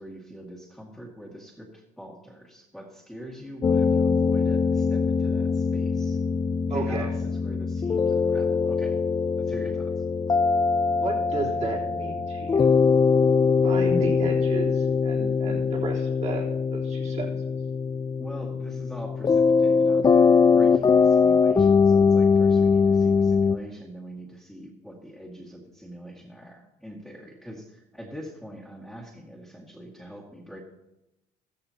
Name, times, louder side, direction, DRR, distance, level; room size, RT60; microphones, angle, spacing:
voice 1, 0.0-6.2 6.7-9.0 9.4-10.0 18.2-30.6, equal, ahead, -6 dB, 2.1 m, -43 dB
sound 1, 3.6-23.6, left 5 dB, 25° left, 0.4 m, -22 dB
voice 2, 6.7-7.1 11.0-12.7 13.6-17.4, right 3 dB, 40° right, -4 dB, 3.6 m, -33 dB
14.5 x 14.0 x 2.9 m, 0.92 s
cardioid pair, 110°, 17 cm